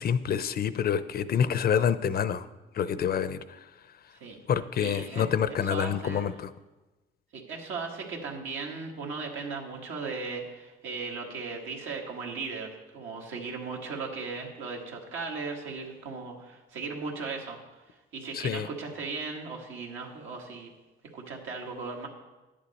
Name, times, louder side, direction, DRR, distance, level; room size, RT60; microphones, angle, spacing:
voice 1, 0.0-2.4 2.8-3.4 4.5-6.5 18.3-18.7, left 8 dB, 50° left, 14 dB, 0.5 m, -27 dB
voice 2, 4.8-5.3 5.6-6.4 7.3-17.6 18.1-20.7 21.1-22.1, right 4 dB, 80° right, 0 dB, 1.7 m, -37 dB
10.5 x 8.6 x 4.2 m, 1.1 s
cardioid pair, 90°, 20 cm